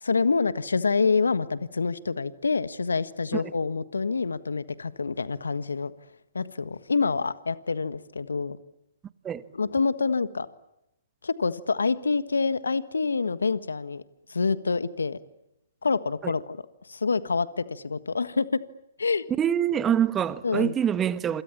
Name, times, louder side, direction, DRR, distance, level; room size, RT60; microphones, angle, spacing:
voice 1, 0.0-5.9 6.3-8.6 9.5-10.5 11.2-14.0 14.3-15.2 15.8-16.6 16.9-18.6 19.0-19.2 20.4-20.7, left 4 dB, 80° left, 1.5 m, -26 dB
voice 2, 19.4-21.4, right 9 dB, 15° right, 1.4 m, -25 dB
27.5 x 26.5 x 7.3 m
figure-of-eight pair, 125°, 0 cm